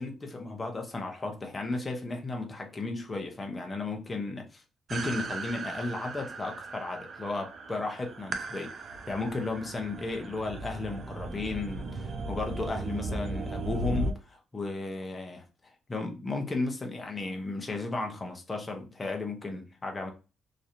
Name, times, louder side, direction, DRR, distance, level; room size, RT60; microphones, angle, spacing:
voice 1, 0.0-4.6 4.9-8.7 9.1-20.1, left 2 dB, 25° left, 0.8 m, -34 dB
sound 1, 4.9-14.1, right 2 dB, 50° right, 0.5 m, -37 dB
3.1 x 2.8 x 2.6 m
cardioid pair, 90°, 0 cm